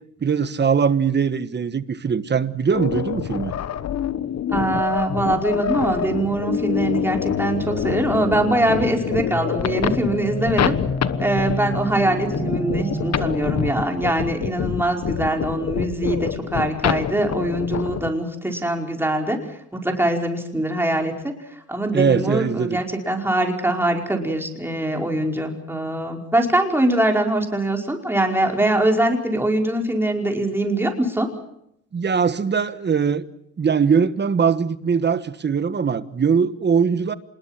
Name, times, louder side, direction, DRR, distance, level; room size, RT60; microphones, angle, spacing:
voice 1, 0.2-3.5 21.9-22.8 31.9-33.3 33.6-37.1, right 6 dB, 35° right, 1.4 m, -21 dB
sound 1, 2.7-18.1, left 9 dB, 60° left, 1.2 m, -27 dB
voice 2, 4.5-10.8 11.2-19.4 19.8-21.3 21.7-31.3, right 1 dB, 5° right, 5.1 m, -22 dB
sound 2, 5.8-13.8, left 2 dB, 35° left, 7.9 m, -30 dB
26.0 x 21.0 x 7.5 m
cardioid pair, 90°, 30 cm